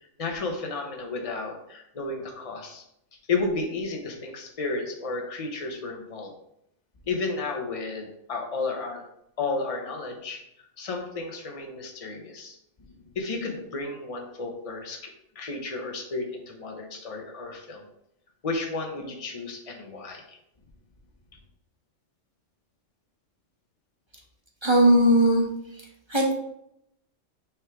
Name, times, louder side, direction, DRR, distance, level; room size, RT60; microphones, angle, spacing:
voice 1, 0.2-2.8 3.3-6.3 7.1-9.0 9.4-10.4 10.8-12.6 13.1-17.8 18.4-20.4, left 3 dB, 30° left, 2 dB, 1.0 m, -32 dB
voice 2, 24.6-25.4 26.1-26.3, right 1 dB, 25° right, 0 dB, 1.1 m, -18 dB
6.2 x 4.7 x 3.6 m, 0.77 s
omnidirectional pair, 1.3 m